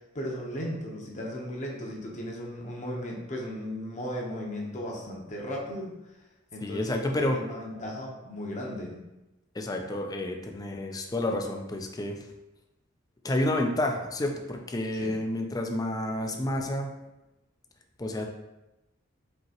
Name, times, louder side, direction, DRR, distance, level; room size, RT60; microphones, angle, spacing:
voice 1, 0.1-5.9 6.5-9.0 15.0-15.2, equal, 40° left, -2 dB, 0.8 m, -36 dB
voice 2, 6.6-7.4 9.5-12.2 13.2-16.9 18.0-18.3, left 1 dB, 20° left, 3 dB, 0.4 m, -30 dB
5.3 x 2.9 x 2.9 m, 0.99 s
head